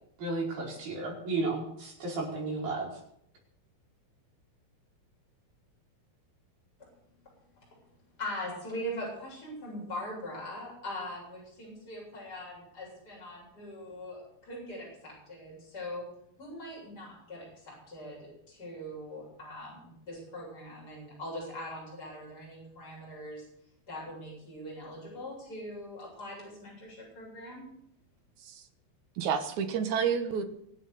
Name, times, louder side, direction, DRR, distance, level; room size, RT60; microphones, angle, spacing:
voice 1, 0.2-2.9, right 3 dB, 90° right, -3 dB, 7.0 m, -33 dB
voice 2, 8.2-16.1 16.4-23.5 23.9-27.7, left 1 dB, 25° left, -4 dB, 8.2 m, -41 dB
voice 3, 29.2-30.4, right 7 dB, 60° right, 8 dB, 2.3 m, -30 dB
24.0 x 8.1 x 6.8 m, 0.71 s
omnidirectional pair, 4.3 m